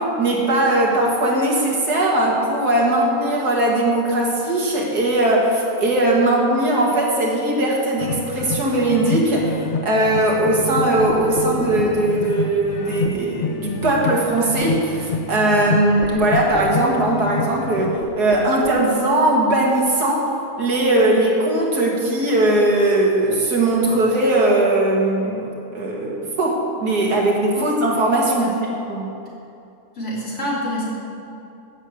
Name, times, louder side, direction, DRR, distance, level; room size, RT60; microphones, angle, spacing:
voice 1, 0.0-28.5 28.9-29.1, right 1 dB, 85° right, -2 dB, 2.6 m, -19 dB
sound 1, 8.0-18.0, left 4 dB, 80° left, 0.4 m, -28 dB
sound 2, 11.1-12.0 13.0-13.2 13.8-14.0 14.6-14.8 16.0-16.7 18.0-18.8, right 1 dB, 50° right, 2.2 m, -34 dB
voice 2, 30.0-30.9, equal, 45° left, -6 dB, 3.3 m, -26 dB
11.0 x 7.4 x 8.4 m, 2.7 s
omnidirectional pair, 1.6 m